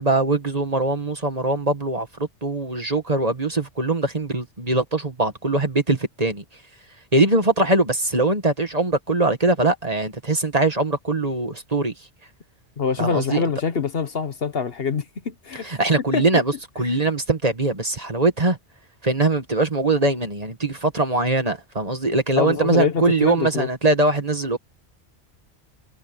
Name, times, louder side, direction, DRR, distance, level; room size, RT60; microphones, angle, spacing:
voice 1, 0.0-6.4 7.1-11.9 13.0-13.4 15.6-18.6 19.0-24.6, right 2 dB, 35° right, 2.1 m, -22 dB
voice 2, 12.8-15.8 16.1-16.4 22.4-23.7, left 6 dB, 60° left, 1.3 m, -25 dB
omnidirectional pair, 1.1 m